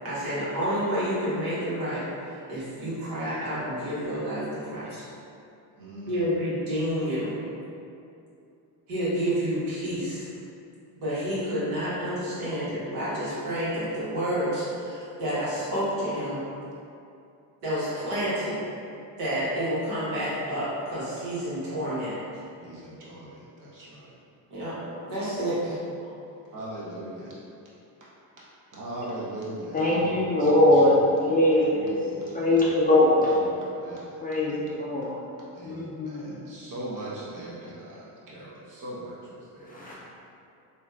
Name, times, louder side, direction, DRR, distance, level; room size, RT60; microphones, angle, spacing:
voice 1, 0.0-2.0 2.5-5.0 6.1-7.4 8.9-10.3 11.0-16.4 17.6-18.6 19.2-22.1 24.5-24.8 25.1-25.8, equal, 80° right, -10 dB, 1.4 m, -29 dB
voice 2, 5.8-6.3 16.1-16.2 22.6-24.2 25.8-25.9 26.4-27.3 28.7-31.4 31.7-32.7 33.2-35.1 35.5-39.9, right 1 dB, 40° right, -6 dB, 1.0 m, -40 dB
voice 3, 29.7-30.9 31.2-31.8 32.3-33.3 34.2-35.1 35.6-36.4 39.7-39.9, left 1 dB, 20° left, -6 dB, 0.4 m, -22 dB
3.0 x 2.7 x 2.4 m, 2.6 s
supercardioid pair, 70°, 48 cm